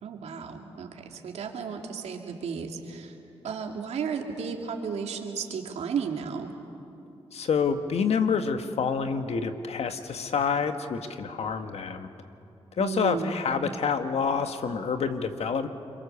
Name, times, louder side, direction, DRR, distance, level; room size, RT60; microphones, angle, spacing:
voice 1, 0.0-3.1 3.4-6.5 12.8-13.3, right 6 dB, 85° right, 3 dB, 2.5 m, -33 dB
voice 2, 7.3-12.1 12.8-15.7, left 6 dB, 75° left, 8 dB, 1.6 m, -27 dB
29.5 x 23.0 x 7.1 m, 2.9 s
cardioid pair, 60°, 11 cm